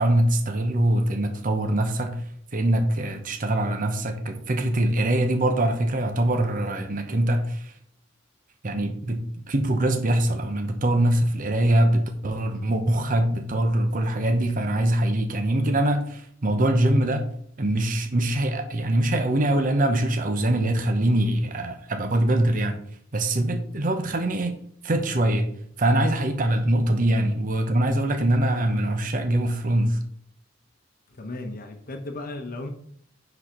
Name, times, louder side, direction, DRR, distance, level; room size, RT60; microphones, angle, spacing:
voice 1, 0.0-2.2 2.5-7.7 8.6-9.2 9.5-17.3 17.6-22.8 23.1-24.6 24.8-25.5 25.8-30.0, right 1 dB, 45° right, 5 dB, 0.9 m, -23 dB
voice 2, 31.2-32.7, left 2 dB, 50° left, 4 dB, 0.8 m, -35 dB
10.0 x 4.2 x 4.4 m, 0.65 s
head